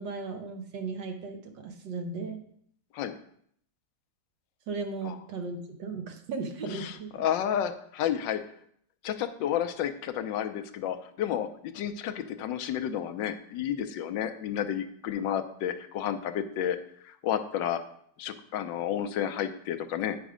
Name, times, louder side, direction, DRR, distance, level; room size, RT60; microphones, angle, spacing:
voice 1, 0.0-2.4 4.7-7.3, right 4 dB, 75° right, 5 dB, 1.7 m, -36 dB
voice 2, 6.8-8.4 9.0-16.8 17.0-17.8 18.2-20.2, left 10 dB, 80° left, 9 dB, 1.3 m, -31 dB
9.1 x 5.2 x 4.9 m, 0.66 s
omnidirectional pair, 2.0 m